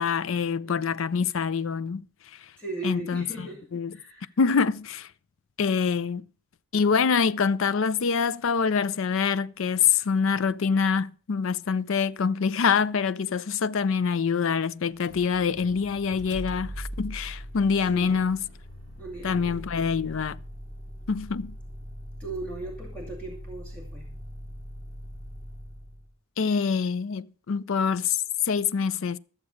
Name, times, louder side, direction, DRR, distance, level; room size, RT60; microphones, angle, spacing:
voice 1, 0.0-2.1 2.8-3.5 3.7-3.9 4.4-5.1 5.6-6.2 6.7-18.4 19.2-20.4 21.1-21.5 26.4-29.2, left 6 dB, 65° left, 0.4 m, -25 dB
voice 2, 0.6-1.2 2.6-4.4 17.8-18.2 19.0-19.8 22.2-24.1, right 2 dB, 5° left, 2.3 m, -39 dB
Motor vehicle (road), 14.9-26.1, equal, 45° left, 5.4 m, -41 dB
13.5 x 7.3 x 6.3 m
head